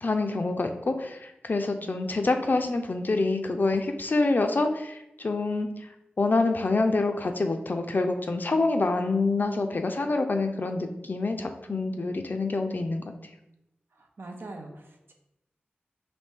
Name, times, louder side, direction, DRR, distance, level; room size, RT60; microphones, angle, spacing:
voice 1, 0.0-5.7 6.2-13.1, left 3 dB, 50° left, 5 dB, 0.4 m, -26 dB
voice 2, 1.8-2.2 11.7-11.8 13.9-15.1, right 2 dB, 70° right, 2 dB, 0.7 m, -44 dB
4.2 x 2.7 x 3.5 m, 0.87 s
cardioid pair, 45°, 4 cm